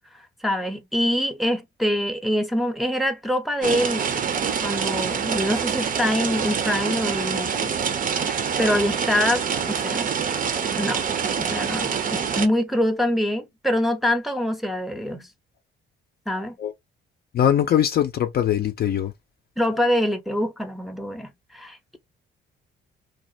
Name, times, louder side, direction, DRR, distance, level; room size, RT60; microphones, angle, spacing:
voice 1, 0.4-4.3 4.6-7.7 8.2-10.1 10.8-11.1 11.4-15.3 16.3-16.6 19.6-22.0, equal, ahead, 0.6 m, -25 dB
sound 1, 3.6-12.5, right 7 dB, 45° right, 0.5 m, -26 dB
voice 2, 17.3-19.1, left 10 dB, 55° left, 0.4 m, -21 dB
2.4 x 2.1 x 2.6 m
cardioid pair, 90°, 20 cm